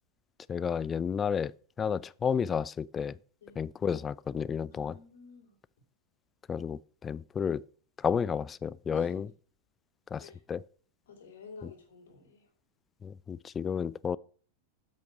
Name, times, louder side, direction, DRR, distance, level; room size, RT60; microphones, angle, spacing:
voice 1, 0.5-3.2 3.6-4.9 6.5-7.6 8.0-9.3 10.1-10.6 13.0-14.2, left 7 dB, 20° left, 0.3 m, -31 dB
voice 2, 4.7-5.6 8.9-9.2 10.2-10.4 11.1-12.5, left 4 dB, 60° left, 3.1 m, -51 dB
8.5 x 6.4 x 6.0 m
figure-of-eight pair, 90°, 0 cm